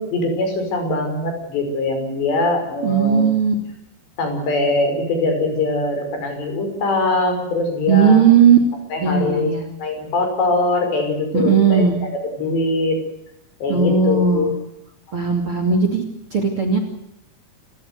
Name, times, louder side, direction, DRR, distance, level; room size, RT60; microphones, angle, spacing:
voice 1, 0.0-3.3 4.2-8.2 8.9-9.5 9.8-11.8 12.4-13.0 13.6-14.5, left 2 dB, 65° left, 5 dB, 7.7 m, -22 dB
voice 2, 2.8-3.5 7.9-8.6 9.0-9.6 11.3-12.0 13.7-14.5 15.1-16.0 16.3-16.8, right 6 dB, 35° right, 6 dB, 2.9 m, -16 dB
28.5 x 16.0 x 8.1 m, 0.79 s
omnidirectional pair, 5.4 m